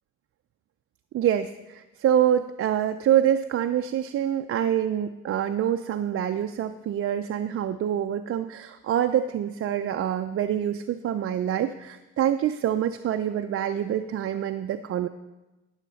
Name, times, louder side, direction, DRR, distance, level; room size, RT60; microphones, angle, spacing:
voice 1, 1.1-15.1, right 10 dB, 50° right, 8 dB, 0.4 m, -26 dB
12.5 x 6.5 x 4.0 m, 1.1 s
cardioid pair, 90°, 30 cm